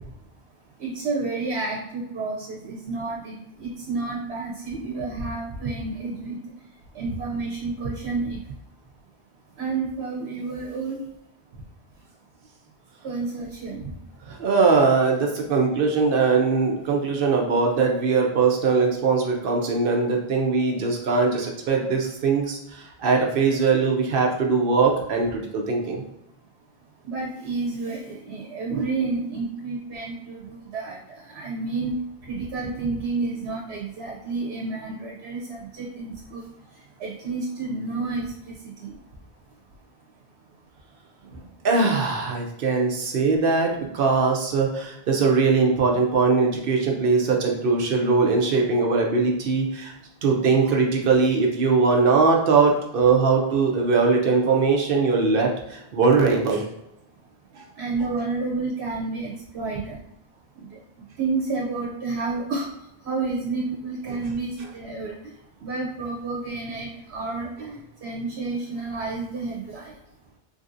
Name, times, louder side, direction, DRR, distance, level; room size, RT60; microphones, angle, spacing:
voice 1, 0.8-6.4 6.9-8.4 9.6-11.0 13.0-14.0 27.0-31.0 31.3-31.9 32.3-36.4 37.0-38.9 57.8-59.9 60.6-60.8 61.2-62.7 63.0-65.1 65.6-69.9, right 3 dB, 85° right, -3 dB, 0.9 m, -30 dB
voice 2, 14.3-26.0 41.6-49.9 50.2-56.6 57.6-57.7, right 4 dB, 65° right, 1 dB, 0.7 m, -21 dB
3.3 x 2.6 x 2.5 m, 0.82 s
omnidirectional pair, 1.1 m